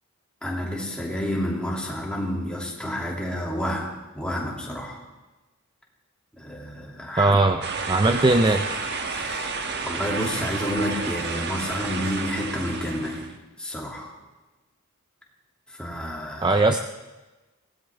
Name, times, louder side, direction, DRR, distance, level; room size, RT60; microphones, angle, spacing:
voice 1, 0.4-5.0 6.4-7.4 9.0-13.3 13.6-14.1 15.7-16.6, equal, 5° left, -2 dB, 2.6 m, -30 dB
voice 2, 7.2-8.8 16.4-16.8, right 2 dB, 20° right, 6 dB, 0.5 m, -20 dB
sound 1, 7.6-13.3, right 4 dB, 50° right, 1.3 m, -31 dB
23.0 x 17.0 x 3.5 m, 1.2 s
head